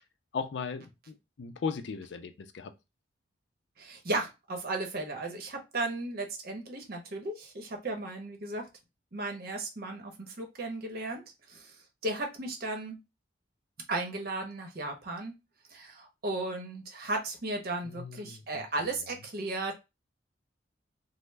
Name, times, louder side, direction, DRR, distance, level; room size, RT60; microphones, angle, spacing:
voice 1, 0.3-2.7 17.8-18.6, left 5 dB, 65° left, 0.4 m, -37 dB
voice 2, 3.8-8.7 9.1-11.2 11.5-11.7 12.0-13.0 13.9-15.3 15.7-19.8, right 2 dB, 55° right, 0.9 m, -35 dB
3.1 x 2.0 x 3.3 m
head